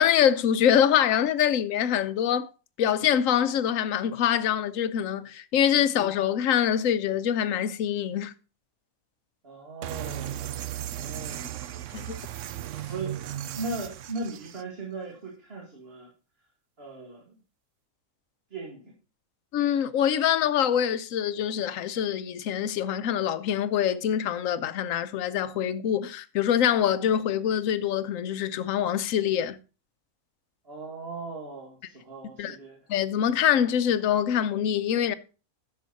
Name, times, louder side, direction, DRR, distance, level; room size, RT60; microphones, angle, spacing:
voice 1, 0.0-2.5 2.8-8.3 11.9-12.2 19.5-29.6 32.4-32.6 32.9-35.1, left 9 dB, 70° left, 1.1 m, -24 dB
voice 2, 9.4-10.4 10.9-11.5 12.8-13.3 13.6-16.1 16.8-17.4 18.5-18.9 30.6-32.8, right 3 dB, 45° right, 2.4 m, -38 dB
sound 1, 9.8-14.6, right 12 dB, 65° right, 0.9 m, -36 dB
11.0 x 7.3 x 4.0 m
omnidirectional pair, 1.5 m